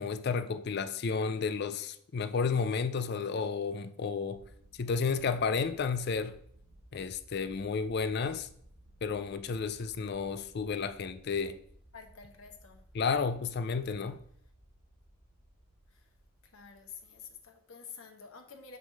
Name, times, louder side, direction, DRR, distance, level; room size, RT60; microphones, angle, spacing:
voice 1, 0.0-4.4 4.8-6.4 6.9-8.5 9.0-11.6 12.9-14.2, left 5 dB, 50° left, 0.4 m, -32 dB
sound 1, 4.3-17.5, right 1 dB, 45° right, 2.6 m, -59 dB
voice 2, 11.9-12.8 15.9-16.1 16.5-18.8, left 6 dB, 75° left, 1.1 m, -49 dB
7.4 x 3.6 x 6.3 m
head